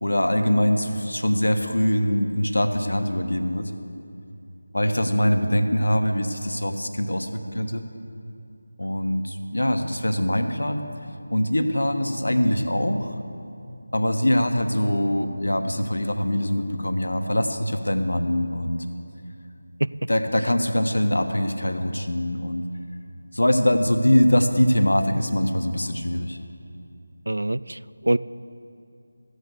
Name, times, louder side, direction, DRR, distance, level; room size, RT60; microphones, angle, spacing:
voice 1, 0.0-3.7 4.7-7.8 8.8-10.8 11.3-13.2 13.9-18.8 20.1-22.6 23.3-26.4, left 1 dB, 70° left, 7 dB, 1.2 m, -23 dB
voice 2, 27.3-28.2, right 1 dB, 70° right, 17 dB, 0.4 m, -24 dB
14.5 x 8.2 x 8.0 m, 2.6 s
figure-of-eight pair, 165°, 0 cm